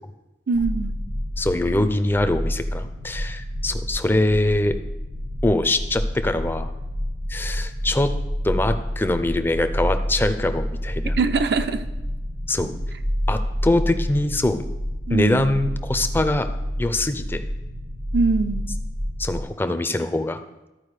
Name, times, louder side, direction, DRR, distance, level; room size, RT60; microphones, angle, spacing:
voice 1, 0.5-1.0 11.2-11.8 15.1-15.5 18.1-18.7, right 4 dB, 65° right, 9 dB, 0.6 m, -22 dB
sound 1, 0.5-19.4, equal, 85° right, 1.9 m, -29 dB
voice 2, 1.4-4.7 5.4-6.7 7.3-8.1 8.4-11.2 12.5-12.7 13.3-14.6 15.1-16.5 16.8-17.4 19.2-20.4, left 1 dB, 10° left, 9 dB, 0.4 m, -23 dB
12.0 x 4.7 x 4.8 m, 1.0 s
head